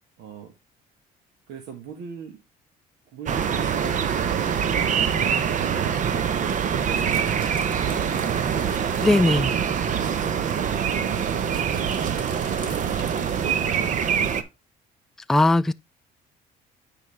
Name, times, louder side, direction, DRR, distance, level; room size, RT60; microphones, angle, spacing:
voice 1, 0.2-0.6 1.5-2.4 3.1-9.0 9.5-14.5, right 7 dB, 80° right, 1.5 m, -41 dB
sound 1, 3.3-14.4, right 7 dB, 50° right, 0.8 m, -24 dB
sound 2, 6.5-9.4 9.6-9.7 10.0-13.5, right 2 dB, 30° right, 2.5 m, -43 dB
voice 2, 9.0-9.5 15.3-15.7, left 2 dB, ahead, 0.3 m, -19 dB
9.1 x 4.8 x 3.2 m
cardioid pair, 110°, 17 cm